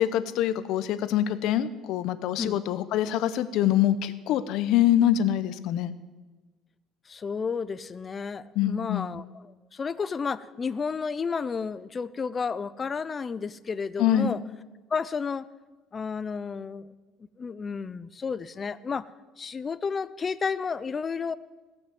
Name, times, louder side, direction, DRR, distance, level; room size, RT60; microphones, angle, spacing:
voice 1, 0.0-5.9 8.6-9.1 14.0-14.4, left 11 dB, 65° left, 13 dB, 0.7 m, -25 dB
voice 2, 7.1-14.4 14.9-15.5 15.9-16.9 17.4-19.0 19.4-21.3, left 5 dB, 25° left, 16 dB, 0.4 m, -32 dB
17.0 x 6.1 x 7.7 m, 1.3 s
cardioid pair, 145°, 0 cm